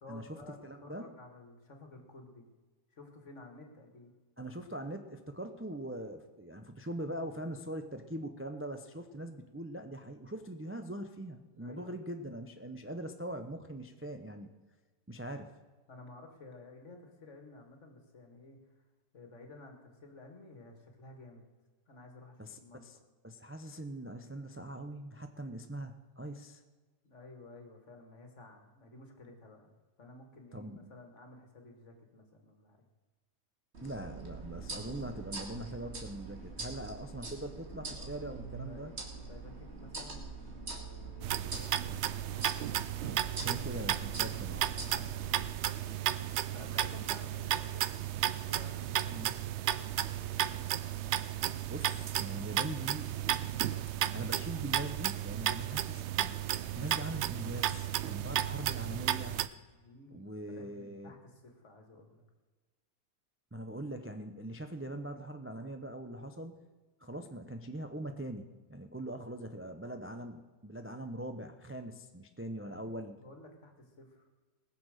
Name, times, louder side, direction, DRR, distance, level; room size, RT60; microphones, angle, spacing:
voice 1, 0.0-2.5 2.9-4.1 11.6-12.0 15.9-18.9 19.1-21.4 21.9-22.9 27.0-29.7 30.0-32.8 37.9-38.1 38.6-42.3 45.1-45.5 45.8-47.9 48.5-49.3 49.7-50.5 58.1-62.3 72.6-72.9 73.2-74.3, left 2 dB, 55° left, 4 dB, 2.2 m, -54 dB
voice 2, 0.6-1.1 4.4-14.5 15.1-15.5 22.4-23.0 23.2-26.6 30.5-30.9 33.8-38.9 43.0-44.7 49.1-49.3 51.7-53.1 53.9-56.4 56.7-59.4 60.1-61.1 63.5-66.6 67.0-73.2, right 1 dB, 15° right, 6 dB, 0.5 m, -42 dB
sound 1, 33.7-45.4, right 3 dB, 50° right, 2.3 m, -44 dB
sound 2, 41.2-59.5, right 11 dB, 65° right, 0.7 m, -34 dB
19.5 x 6.9 x 6.5 m, 1.3 s
omnidirectional pair, 1.5 m